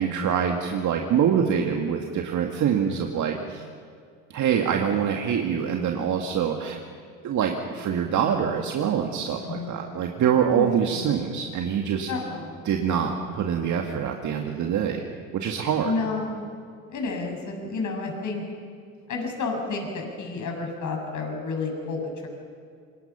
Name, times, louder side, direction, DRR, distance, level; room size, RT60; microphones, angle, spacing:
voice 1, 0.0-3.6 4.3-6.8 7.2-12.1 12.6-15.0 15.3-15.9, right 8 dB, 45° right, 3 dB, 2.2 m, -25 dB
voice 2, 9.4-9.9 10.5-11.1 12.1-12.6 15.8-16.4 16.9-18.4 19.1-22.3, left 3 dB, 45° left, 2 dB, 7.5 m, -31 dB
28.0 x 26.5 x 5.9 m, 2.2 s
figure-of-eight pair, 65°, 41 cm